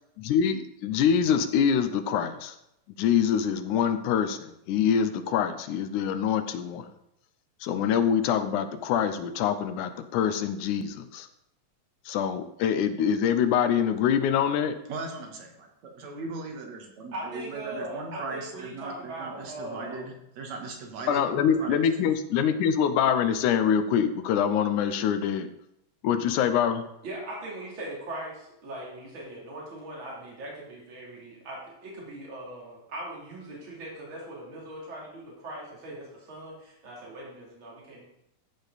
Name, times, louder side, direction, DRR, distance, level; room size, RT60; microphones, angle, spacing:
voice 1, 0.2-2.6 3.0-6.9 7.6-11.3 12.1-14.8 21.1-25.5 26.0-26.8, left 8 dB, 85° left, 10 dB, 2.2 m, -25 dB
voice 2, 14.9-21.9, right 3 dB, 65° right, 2 dB, 2.8 m, -38 dB
voice 3, 17.1-20.1 27.0-38.1, right 1 dB, 40° right, -5 dB, 3.7 m, -40 dB
14.5 x 5.4 x 4.1 m, 0.80 s
omnidirectional pair, 3.5 m